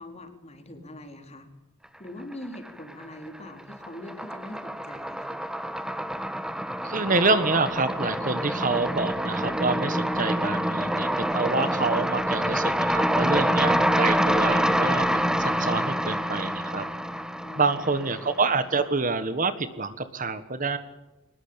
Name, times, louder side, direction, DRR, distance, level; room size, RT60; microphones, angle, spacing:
voice 1, 0.0-1.5 2.0-5.4 17.4-17.6, left 1 dB, 30° left, 6 dB, 3.9 m, -42 dB
sound 1, 2.3-3.1 3.4-18.5, equal, 5° right, 1.2 m, -26 dB
voice 2, 6.8-16.9 17.5-20.8, right 3 dB, 40° right, 12 dB, 1.5 m, -27 dB
23.0 x 20.5 x 8.8 m, 1.0 s
head